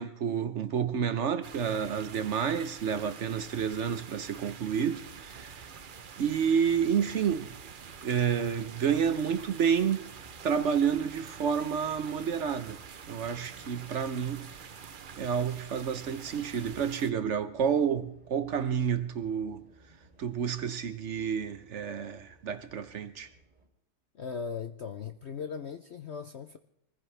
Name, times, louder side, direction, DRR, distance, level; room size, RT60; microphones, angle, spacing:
voice 1, 0.0-5.7 6.2-7.6 8.0-10.0 10.4-12.8 13.1-14.5 15.2-19.6 20.2-23.3, right 7 dB, 60° right, 0.8 m, -29 dB
sound 1, 1.4-17.1, right 6 dB, 75° right, 0.4 m, -47 dB
sound 2, 5.1-23.7, right 2 dB, 25° right, 3.1 m, -58 dB
voice 2, 24.1-26.6, left 6 dB, 70° left, 0.6 m, -38 dB
25.5 x 15.0 x 3.3 m
omnidirectional pair, 2.0 m